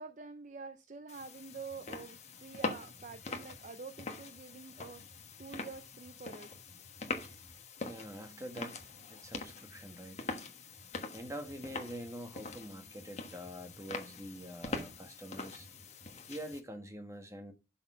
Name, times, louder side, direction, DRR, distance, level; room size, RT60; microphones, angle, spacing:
voice 1, 0.0-6.5, right 4 dB, 40° right, 0.5 m, -47 dB
sound 1, 1.1-16.6, left 3 dB, 35° left, 1.3 m, -44 dB
voice 2, 7.8-8.8 9.1-10.2 11.1-15.7 16.3-17.5, equal, 15° right, 1.5 m, -45 dB
12.0 x 4.3 x 5.6 m
head